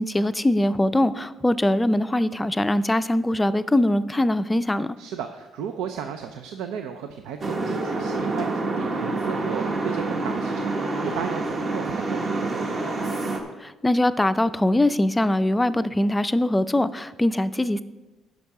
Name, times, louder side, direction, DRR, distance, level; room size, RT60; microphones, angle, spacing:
voice 1, 0.0-5.0 13.6-17.8, left 1 dB, 15° left, 13 dB, 0.4 m, -22 dB
voice 2, 5.0-8.5 8.8-12.8, right 7 dB, 90° right, 7 dB, 0.5 m, -34 dB
sound 1, 7.4-13.4, right 2 dB, 45° right, 1.4 m, -27 dB
10.0 x 5.9 x 4.7 m, 1.1 s
cardioid pair, 85°, 0 cm